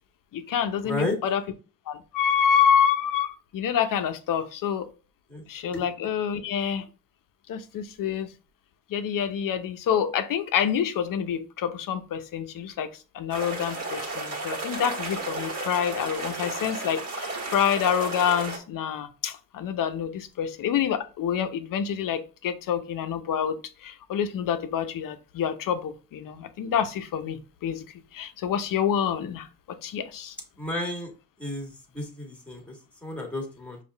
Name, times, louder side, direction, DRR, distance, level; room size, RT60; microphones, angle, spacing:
voice 1, 0.3-1.4 1.9-4.9 5.5-6.8 7.5-8.3 8.9-27.8 28.1-30.4, left 8 dB, 45° left, 0.7 m, -27 dB
voice 2, 0.8-1.2 5.3-5.4 5.7-5.8 30.6-31.1 31.4-33.8, left 2 dB, 5° left, 1.7 m, -32 dB
sound 1, 13.3-18.6, right 2 dB, 35° right, 1.5 m, -33 dB
5.3 x 2.4 x 3.4 m
hypercardioid pair, 60°, 45 cm